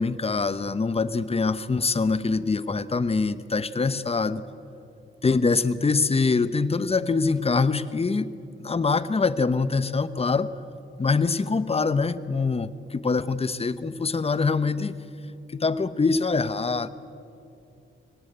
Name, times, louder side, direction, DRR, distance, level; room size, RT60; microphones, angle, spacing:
voice 1, 0.0-4.4 5.2-8.3 8.6-10.5 11.0-15.0 15.5-16.9, left 4 dB, 30° left, 14 dB, 0.9 m, -24 dB
24.0 x 18.5 x 9.0 m, 2.6 s
cardioid pair, 95°, 21 cm